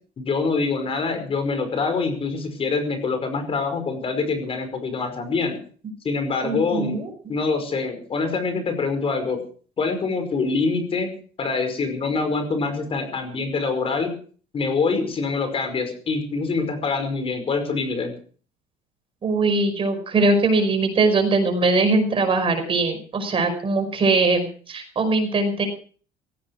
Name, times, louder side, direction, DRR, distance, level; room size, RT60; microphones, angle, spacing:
voice 1, 0.2-5.6 6.0-7.0 7.3-9.4 9.8-11.1 11.4-14.1 14.5-18.2, left 4 dB, 35° left, 8 dB, 5.3 m, -25 dB
voice 2, 6.4-7.1 19.2-25.7, right 3 dB, 35° right, 7 dB, 5.3 m, -21 dB
17.5 x 16.5 x 4.8 m, 0.43 s
cardioid pair, 125°, 16 cm